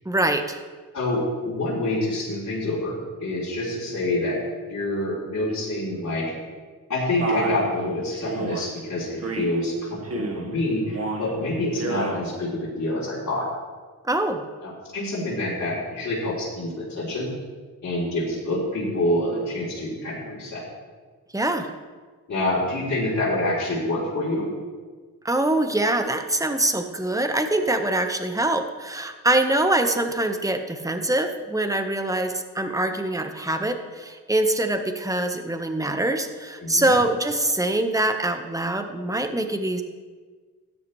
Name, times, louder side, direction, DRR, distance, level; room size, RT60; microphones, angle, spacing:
voice 1, 0.0-0.6 14.0-14.4 21.3-21.7 25.2-39.8, right 1 dB, 10° right, 6 dB, 1.3 m, -24 dB
voice 2, 0.9-4.4 4.7-6.3 6.9-13.5 14.6-17.3 17.8-20.6 22.3-24.5 36.6-36.9, left 1 dB, 55° left, -9 dB, 3.7 m, -27 dB
Male speech man speaking, 7.2-7.7 8.3-8.7 9.2-9.6 10.0-10.5 10.9-11.3 11.7-12.2, right 3 dB, 45° right, 1.6 m, -30 dB
13.5 x 10.5 x 3.3 m, 1.4 s
supercardioid pair, 45°, 33 cm